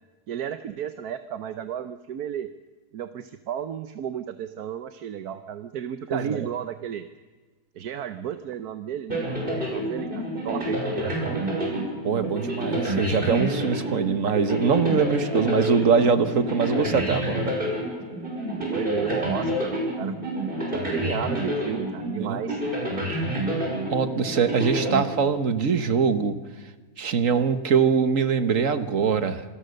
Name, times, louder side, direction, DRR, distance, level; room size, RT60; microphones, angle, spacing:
voice 1, 0.3-2.5 2.9-7.1 7.7-11.7 18.6-20.1 20.7-22.6, right 9 dB, 75° right, 10 dB, 1.4 m, -33 dB
voice 2, 6.1-6.5 12.0-17.5 22.2-22.4 23.9-26.4 27.0-29.4, right 6 dB, 55° right, 10 dB, 1.7 m, -23 dB
sound 1, 9.1-25.7, equal, 30° right, 6.4 m, -29 dB
26.5 x 19.5 x 6.6 m, 1.3 s
omnidirectional pair, 1.7 m